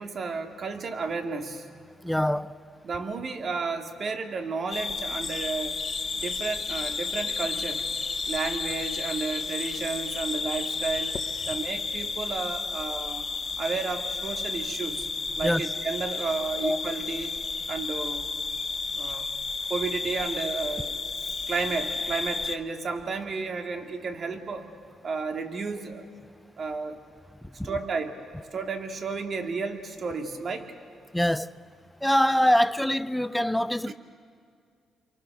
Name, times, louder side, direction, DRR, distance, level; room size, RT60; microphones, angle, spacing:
voice 1, 0.0-1.7 2.8-5.8 6.1-7.8 8.3-11.2 11.5-13.2 13.6-15.1 15.4-17.4 17.7-18.3 18.9-19.3 19.7-21.0 21.5-24.7 25.0-26.1 26.6-27.0 27.6-28.2 28.5-30.7 33.9-34.0, right 4 dB, 50° right, 2.3 m, -32 dB
voice 2, 2.0-2.5 15.4-15.6 16.6-16.8 27.6-27.7 31.1-31.5 32.0-33.9, equal, 5° left, 0.6 m, -24 dB
sound 1, 4.7-22.6, left 4 dB, 35° left, 1.0 m, -32 dB
sound 2, 5.2-11.7, left 6 dB, 50° left, 1.2 m, -39 dB
28.5 x 24.0 x 6.8 m
cardioid pair, 90°, 0 cm